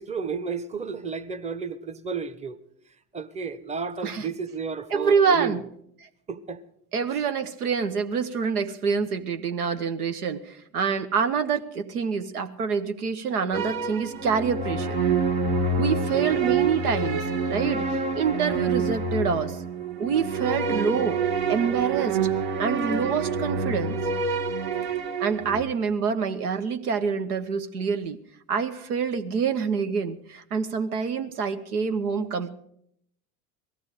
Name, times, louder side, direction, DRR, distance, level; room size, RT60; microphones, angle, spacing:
voice 1, 0.0-2.6 3.1-5.6 6.3-6.6 16.1-16.4, right 5 dB, 15° right, 0.9 m, -32 dB
voice 2, 4.9-5.6 6.9-15.0 15.8-17.9 18.1-19.6 20.0-21.2 21.5-22.2 22.6-24.0 25.2-28.2 28.5-32.5, right 6 dB, 85° right, 1.2 m, -26 dB
sound 1, 13.5-25.6, right 4 dB, 65° right, 1.9 m, -27 dB
17.5 x 14.0 x 4.9 m
hypercardioid pair, 90°, 44 cm